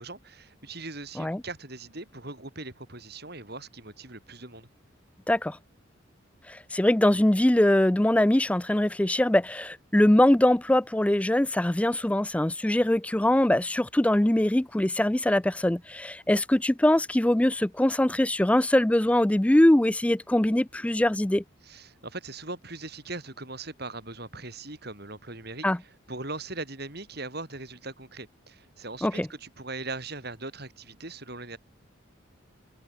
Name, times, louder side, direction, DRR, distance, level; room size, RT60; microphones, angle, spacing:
voice 1, 0.0-4.7 21.6-31.6, right 2 dB, 50° right, 6.3 m, -40 dB
voice 2, 6.5-21.4 25.6-25.8 29.0-29.3, left 1 dB, 5° left, 0.3 m, -22 dB
head